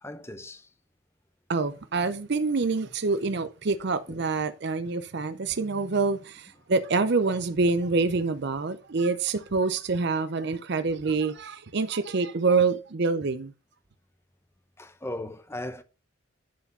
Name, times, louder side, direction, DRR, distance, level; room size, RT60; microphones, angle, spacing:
voice 1, 0.0-0.7 4.1-4.2 14.8-15.8, left 1 dB, 10° left, 0.7 m, -37 dB
voice 2, 1.5-13.5, right 4 dB, 50° right, 0.5 m, -26 dB
10.5 x 4.9 x 5.3 m
head